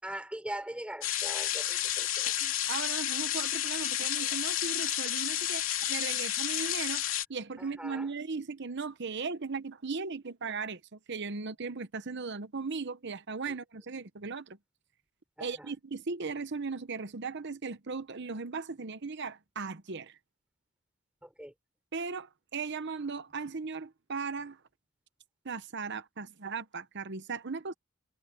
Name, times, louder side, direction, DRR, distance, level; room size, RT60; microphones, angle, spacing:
voice 1, 0.0-2.3 7.6-8.1 13.5-13.6 15.4-15.7 21.2-21.5, right 1 dB, 5° right, 6.1 m, -41 dB
sound 1, 1.0-7.3, left 12 dB, 70° left, 3.1 m, -31 dB
voice 2, 2.4-7.0 7.3-14.6 15.4-20.2 21.9-24.6 25.4-27.7, right 4 dB, 55° right, 0.9 m, -37 dB
head